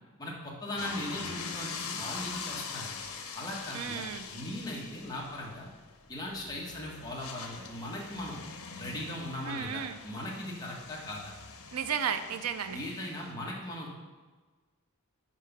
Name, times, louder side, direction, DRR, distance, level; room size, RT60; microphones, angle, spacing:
voice 1, 0.2-2.9 3.3-4.1 4.3-5.7 6.1-8.4 8.8-11.3 12.7-13.9, left 1 dB, 15° left, -3 dB, 1.4 m, -39 dB
sound 1, 0.8-13.3, left 5 dB, 75° left, 0.9 m, -43 dB
voice 2, 3.7-4.3 9.5-10.0 11.7-12.8, right 7 dB, 80° right, 10 dB, 0.5 m, -33 dB
6.0 x 4.9 x 5.9 m, 1.3 s
head